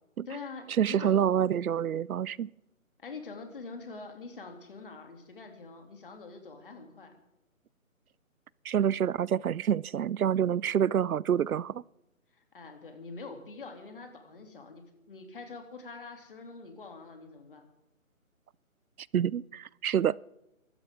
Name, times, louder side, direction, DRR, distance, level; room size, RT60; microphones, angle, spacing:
voice 1, 0.3-1.2 3.0-7.1 12.3-17.7, left 4 dB, 40° left, 2.9 m, -45 dB
voice 2, 0.8-2.5 8.6-11.8 19.1-20.2, right 9 dB, 80° right, 0.6 m, -27 dB
24.0 x 13.0 x 3.7 m
hypercardioid pair, 175°, 42 cm